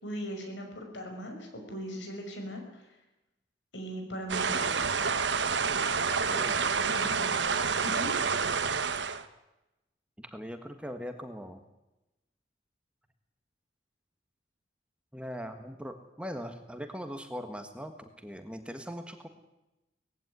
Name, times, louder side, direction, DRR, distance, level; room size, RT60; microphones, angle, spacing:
voice 1, 0.0-3.0 3.7-4.7 6.8-7.3 7.8-8.1, equal, 80° left, 4 dB, 5.7 m, -39 dB
sound 1, 4.3-9.2, right 5 dB, 75° right, 1.2 m, -28 dB
voice 2, 6.1-6.6 10.2-11.6 15.1-19.3, equal, 5° right, 7 dB, 1.4 m, -40 dB
19.5 x 16.0 x 9.5 m, 0.97 s
head